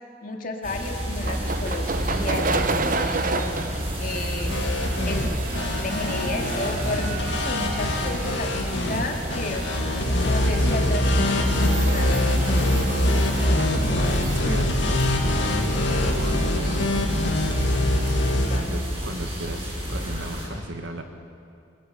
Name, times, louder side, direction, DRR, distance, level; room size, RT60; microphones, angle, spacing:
voice 1, 0.2-4.6 5.1-5.5 5.8-9.7 10.2-12.4 18.3-18.8, left 2 dB, 50° left, 2 dB, 2.6 m, -33 dB
sound 1, 0.6-20.5, equal, 30° right, 6.5 m, -30 dB
sound 2, 1.2-18.6, right 2 dB, 45° right, 1.1 m, -31 dB
sound 3, 4.5-18.6, left 1 dB, 70° left, 2.5 m, -24 dB
voice 2, 12.9-17.2 18.4-21.0, right 1 dB, 75° right, 5 dB, 2.2 m, -36 dB
30.0 x 21.0 x 6.7 m, 2.5 s
head